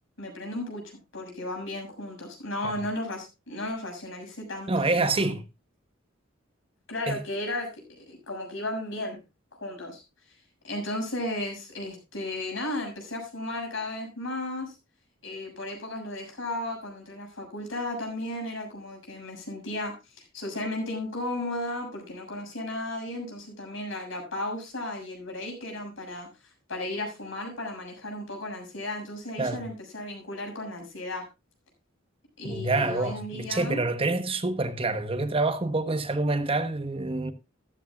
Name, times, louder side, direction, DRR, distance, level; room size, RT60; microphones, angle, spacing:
voice 1, 0.2-5.4 6.9-9.2 9.6-10.0 10.6-14.8 15.2-19.9 20.3-26.3 26.7-31.2 32.4-33.8, left 1 dB, 70° left, 6.7 m, -34 dB
voice 2, 4.7-5.4 7.1-7.2 29.4-29.6 32.4-37.3, right 3 dB, 30° right, 1.1 m, -27 dB
14.0 x 13.5 x 2.4 m
head